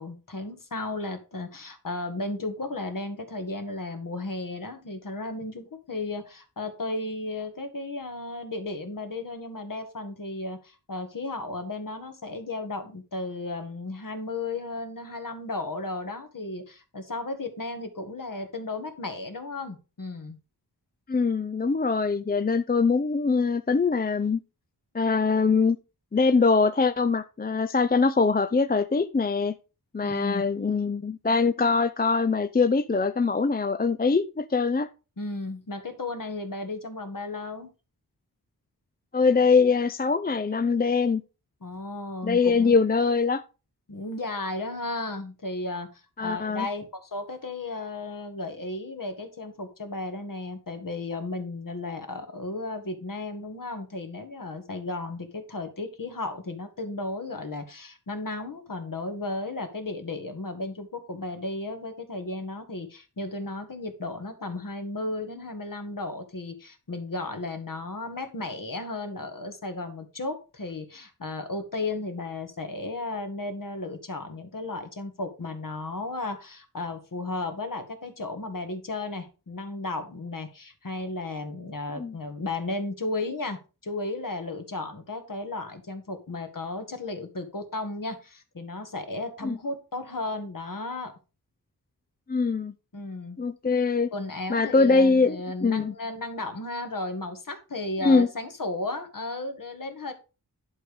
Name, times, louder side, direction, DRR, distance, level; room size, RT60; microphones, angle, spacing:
voice 1, 0.0-20.4 30.0-30.4 35.2-37.7 41.6-42.8 43.9-91.1 92.9-93.4 94.1-100.1, left 2 dB, 55° left, 1.9 m, -34 dB
voice 2, 21.1-24.4 24.9-25.8 26.1-29.5 29.9-34.9 39.1-41.2 42.2-43.4 46.2-46.7 82.0-82.1 89.4-89.6 92.3-92.7 93.4-94.1 94.5-95.9 98.0-98.3, left 4 dB, 25° left, 0.5 m, -23 dB
11.0 x 5.3 x 4.9 m
wide cardioid pair, 80°, 39 cm